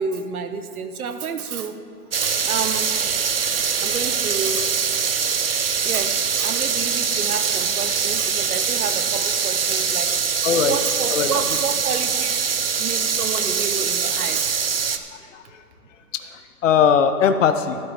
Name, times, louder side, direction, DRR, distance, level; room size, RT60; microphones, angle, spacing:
voice 1, 0.0-1.8 2.2-2.9 3.4-5.0 5.7-12.5 12.8-14.5, right 6 dB, 60° right, 9 dB, 1.0 m, -30 dB
sound 1, 2.1-15.0, right 6 dB, 40° right, 0.4 m, -23 dB
voice 2, 10.4-10.8 11.1-11.4 15.3-15.4 16.3-17.8, left 7 dB, 50° left, 9 dB, 0.8 m, -19 dB
12.5 x 11.5 x 3.5 m, 2.2 s
hypercardioid pair, 145°, 49 cm